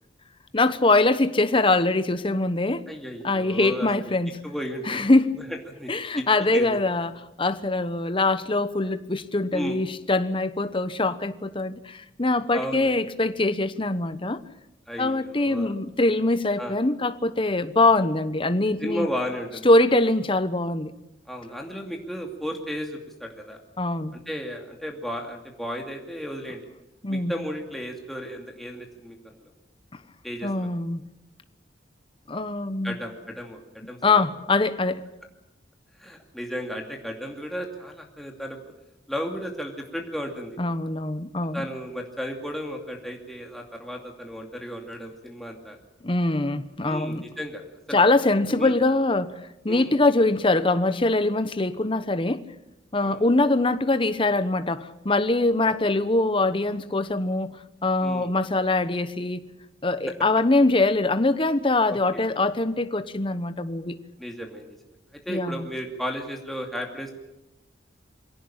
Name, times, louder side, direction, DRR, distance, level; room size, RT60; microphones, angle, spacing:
voice 1, 0.5-2.8 3.2-4.4 4.9-5.4 5.9-14.4 15.0-19.1 19.6-20.9 23.8-24.2 27.0-27.3 30.4-31.0 32.3-33.0 34.0-35.0 40.6-41.6 46.0-47.2 47.9-52.4 52.9-59.4 59.8-64.0 65.3-65.7, left 2 dB, 30° left, 1.0 m, -23 dB
voice 2, 2.9-4.1 4.4-5.0 5.4-6.2 6.5-6.7 9.5-9.8 12.5-12.9 14.9-15.7 16.6-16.8 18.8-19.7 21.3-23.6 24.1-26.6 27.1-29.5 30.2-30.7 32.8-33.6 33.9-34.3 36.0-38.6 39.1-40.6 41.5-45.8 46.8-48.0 48.5-48.8 49.7-49.9 53.0-53.2 55.6-56.0 58.0-58.3 61.9-62.2 64.2-64.8 65.3-67.1, equal, ahead, 2.5 m, -34 dB
23.0 x 17.0 x 8.8 m
head